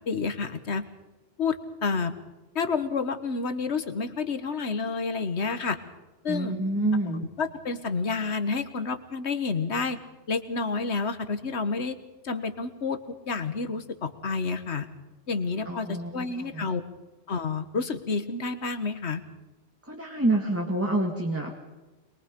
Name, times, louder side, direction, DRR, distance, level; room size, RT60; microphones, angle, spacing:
voice 1, 0.1-0.8 1.4-2.1 2.5-5.8 6.2-6.5 7.1-10.0 10.3-12.0 12.2-13.0 13.3-14.9 15.3-16.8 17.3-19.2, left 4 dB, 65° left, 10 dB, 1.6 m, -29 dB
voice 2, 6.3-7.3 15.7-16.7 19.8-21.5, right 2 dB, 10° right, 0 dB, 2.0 m, -28 dB
22.5 x 22.5 x 5.3 m, 1.1 s
omnidirectional pair, 1.2 m